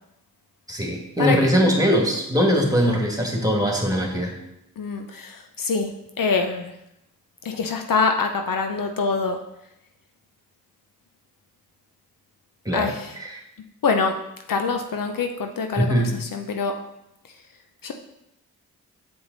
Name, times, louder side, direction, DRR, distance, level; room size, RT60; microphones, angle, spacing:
voice 1, 0.7-4.4 12.7-13.4 15.8-16.1, equal, 10° right, 1 dB, 2.1 m, -21 dB
voice 2, 1.2-1.5 4.8-6.7 7.4-9.4 12.7-13.2 13.8-14.2 14.5-16.7 17.8-17.9, left 4 dB, 55° left, 5 dB, 0.8 m, -25 dB
7.2 x 4.7 x 4.0 m, 0.83 s
supercardioid pair, 40°, 39 cm